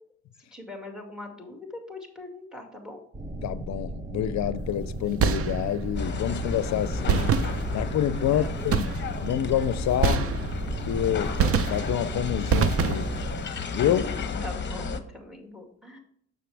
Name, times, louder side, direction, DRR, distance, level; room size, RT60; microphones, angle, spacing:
voice 1, 0.5-3.0 8.3-8.5 13.8-14.1 14.4-16.0, left 1 dB, ahead, 2.2 m, -41 dB
sound 1, 3.1-13.4, right 1 dB, 25° right, 1.2 m, -35 dB
voice 2, 3.4-7.3 7.7-8.9 9.2-10.3 10.8-11.3 11.7-13.1 13.7-14.0, left 10 dB, 65° left, 0.6 m, -27 dB
sound 2, 5.2-5.9 7.1-8.0 8.7-9.3 10.0-10.8 11.4-12.1 12.5-13.3, right 6 dB, 50° right, 0.7 m, -25 dB
sound 3, 6.0-15.0, left 4 dB, 40° left, 1.0 m, -33 dB
6.8 x 6.6 x 3.4 m
cardioid pair, 90°, 30 cm